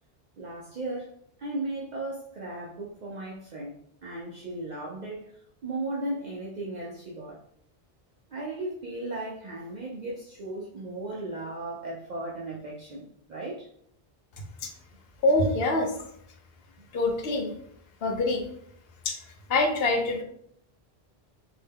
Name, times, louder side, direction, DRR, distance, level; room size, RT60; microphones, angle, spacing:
voice 1, 0.4-3.7 4.0-7.4 8.3-13.7 15.6-15.7 16.8-16.9, right 2 dB, 55° right, -4 dB, 0.5 m, -36 dB
voice 2, 15.2-15.9 16.9-17.5 18.0-18.4 19.0-19.2 19.5-20.2, left 2 dB, 75° left, 3 dB, 0.8 m, -24 dB
2.7 x 2.1 x 3.4 m, 0.70 s
omnidirectional pair, 1.0 m